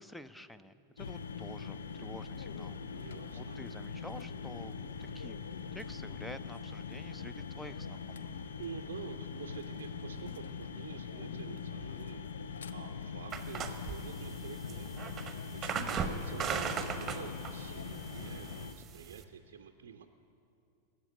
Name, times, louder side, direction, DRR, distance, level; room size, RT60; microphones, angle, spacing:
voice 1, 0.0-4.7 5.1-5.4 5.7-8.3, left 1 dB, 5° left, 13 dB, 0.5 m, -49 dB
sound 1, 1.0-18.7, left 5 dB, 65° left, 0.5 m, -42 dB
voice 2, 2.9-3.6 8.6-14.9 15.2-20.1, right 7 dB, 60° right, 6 dB, 0.5 m, -48 dB
sound 2, 13.3-19.2, right 6 dB, 25° right, 0.9 m, -38 dB
13.5 x 8.1 x 9.7 m, 2.7 s
figure-of-eight pair, 90°, 0 cm